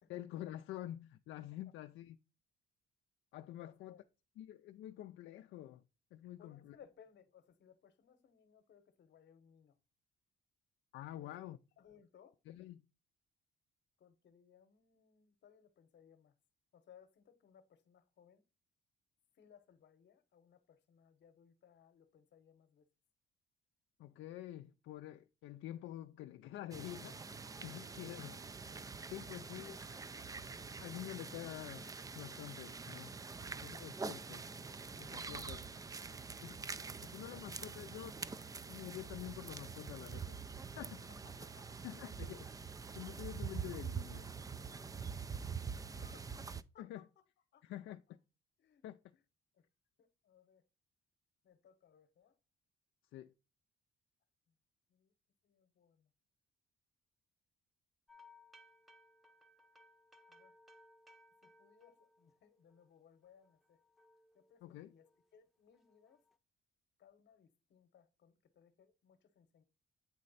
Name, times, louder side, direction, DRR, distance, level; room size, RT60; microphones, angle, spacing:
voice 1, 0.1-2.2 3.3-3.9 4.4-5.8 6.1-6.8 10.9-11.6 12.5-12.8 24.0-28.4 29.1-29.8 30.8-31.9 32.1-33.2 33.6-34.5 35.0-35.7 36.4-36.6 37.1-38.1 38.7-40.4 40.7-41.1 41.8-42.5 42.9-44.3 46.8-47.0 47.6-48.0 48.8-49.0 53.1-53.3 64.6-64.9, left 13 dB, 80° left, 0.4 m, -48 dB
voice 2, 3.6-4.0 6.4-9.7 11.2-11.3 11.8-12.4 14.0-16.3 16.7-18.4 19.4-22.9 28.2-28.4 29.2-29.7 33.4-33.7 36.7-37.5 41.2-41.8 45.6-47.0 47.5-47.7 48.6-48.8 49.1-49.2 49.5-49.7 50.0-50.6 51.4-52.4 54.9-55.1 55.4-56.1 60.3-60.5 61.4-63.8 64.3-66.2 67.0-69.6, left 8 dB, 60° left, 0.9 m, -65 dB
sound 1, 26.7-46.6, right 5 dB, 20° right, 0.3 m, -45 dB
sound 2, 58.1-62.9 63.2-65.3 65.7-66.4, left 1 dB, ahead, 0.7 m, -65 dB
8.7 x 3.2 x 4.0 m
cardioid pair, 90°, 20 cm